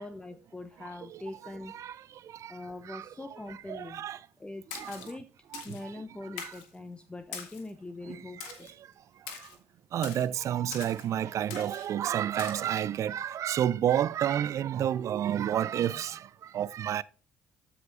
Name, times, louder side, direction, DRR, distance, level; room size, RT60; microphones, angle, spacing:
voice 1, 0.0-1.8 2.5-4.0 4.4-5.3 5.6-8.7, left 2 dB, 15° left, 0.9 m, -42 dB
voice 2, 0.8-4.3 4.7-5.0 5.5-6.6 8.0-8.9 9.2-9.5 9.9-17.0, right 10 dB, 55° right, 0.4 m, -31 dB
Splash splatter, 4.7-5.1 5.5-5.8 6.4-6.7 7.3-7.7 8.4-8.7 9.3-9.6 10.0-10.3 10.7-11.1 11.5-11.9 12.4-12.6, left 7 dB, 75° left, 1.6 m, -42 dB
13.0 x 5.1 x 2.5 m
hypercardioid pair, 55°, 6 cm